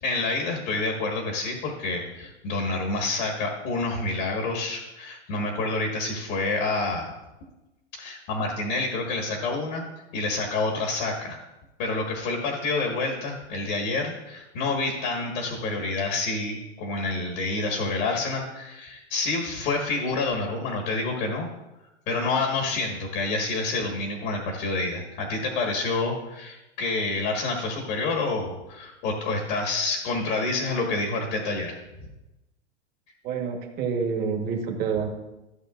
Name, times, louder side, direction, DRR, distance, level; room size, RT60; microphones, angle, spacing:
voice 1, 0.0-7.1 8.0-9.8 10.1-11.4 11.8-21.5 22.1-31.7, left 3 dB, 45° left, 0 dB, 1.6 m, -28 dB
voice 2, 33.2-35.1, right 6 dB, 25° right, 2 dB, 1.3 m, -28 dB
15.0 x 6.7 x 2.5 m, 1.0 s
supercardioid pair, 155°, 35 cm